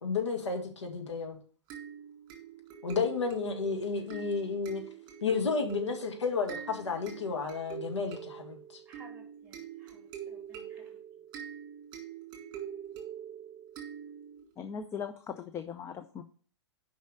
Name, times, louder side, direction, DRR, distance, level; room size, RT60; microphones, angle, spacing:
voice 1, 0.0-1.4 2.8-4.8 5.2-8.8, left 5 dB, 75° left, 2.0 m, -32 dB
sound 1, 1.7-14.5, right 9 dB, 30° right, 2.8 m, -44 dB
voice 2, 3.3-3.6 8.8-11.0, right 2 dB, 10° right, 3.1 m, -58 dB
voice 3, 14.6-16.2, left 7 dB, 20° left, 0.5 m, -39 dB
6.3 x 5.5 x 6.5 m
figure-of-eight pair, 115°, 15 cm